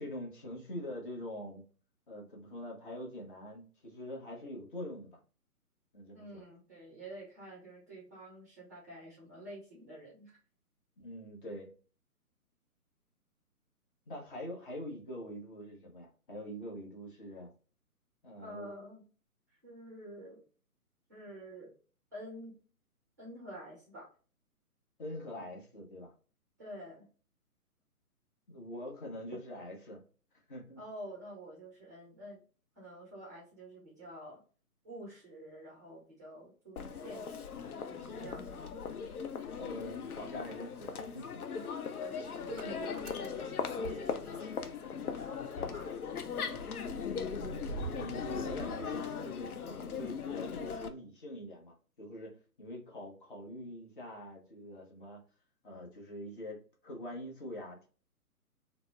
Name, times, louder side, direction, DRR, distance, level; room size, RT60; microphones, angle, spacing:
voice 1, 0.0-1.7 2.1-5.2 5.9-6.4 11.0-11.7 14.1-17.5 18.2-18.7 25.0-26.1 28.5-30.0 30.5-30.8 39.6-41.4 47.9-55.2 55.6-57.9, left 1 dB, 35° left, -1 dB, 0.9 m, -44 dB
voice 2, 6.1-10.3 18.4-19.0 19.6-20.4 21.1-21.7 22.1-22.5 23.2-24.1 26.6-27.0 30.8-32.4 32.8-34.4 34.8-38.7 41.5-41.8 42.4-46.9, right 1 dB, 10° right, -5 dB, 0.5 m, -49 dB
Crowd, 36.8-50.9, left 6 dB, 70° left, 0.6 m, -39 dB
Motor vehicle (road) / Engine starting, 38.8-39.9 40.2-44.9 45.2-45.3 45.5-49.6, right 5 dB, 65° right, 0.5 m, -47 dB
4.0 x 2.0 x 2.2 m, 0.38 s
figure-of-eight pair, 135°, 46 cm